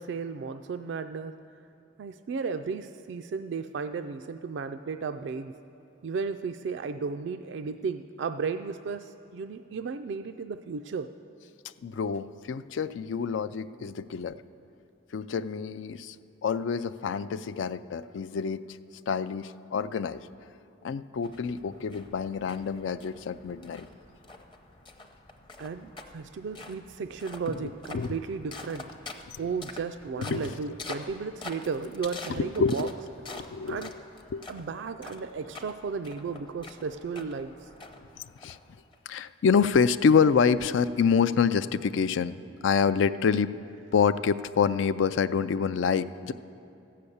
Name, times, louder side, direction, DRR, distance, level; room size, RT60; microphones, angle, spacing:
voice 1, 0.0-1.3 2.0-5.5 6.0-11.1 25.6-28.9 29.4-32.9 33.7-33.9 34.5-37.7, right 5 dB, 65° right, 8 dB, 0.3 m, -34 dB
voice 2, 11.8-14.4 15.1-16.2 16.4-18.7 19.1-20.3 20.8-23.9 27.6-28.1 29.3-29.4 30.2-30.5 32.4-32.9 33.3-33.9 34.3-34.4 38.4-38.6 39.1-42.4 42.6-43.5 43.9-46.3, left 6 dB, 70° left, 14 dB, 0.4 m, -27 dB
sound 1, 21.2-38.9, left 3 dB, 25° left, 0.7 m, -46 dB
14.0 x 6.7 x 8.5 m, 2.8 s
head